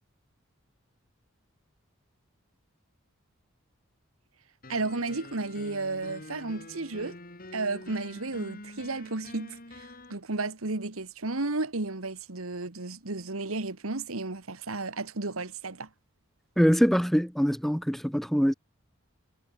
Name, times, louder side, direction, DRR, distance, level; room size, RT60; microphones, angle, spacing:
sound 1, 4.6-10.1, left 2 dB, 45° left, 5.2 m, -46 dB
voice 1, 4.7-7.2 7.5-15.9, right 3 dB, 85° right, 1.8 m, -33 dB
voice 2, 16.6-18.5, equal, ahead, 2.0 m, -23 dB
head